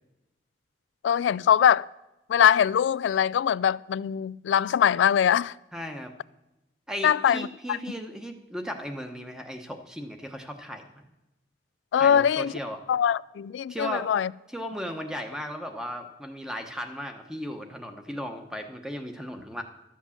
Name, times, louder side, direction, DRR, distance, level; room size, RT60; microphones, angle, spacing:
voice 1, 1.0-1.9 2.3-5.5 7.0-7.8 11.9-12.5 12.9-14.3, left 8 dB, 90° left, 0.3 m, -22 dB
voice 2, 5.7-6.1 6.9-11.0 12.0-12.8 13.7-14.1 14.5-19.6, equal, 5° right, 1.0 m, -36 dB
12.5 x 7.3 x 7.2 m
head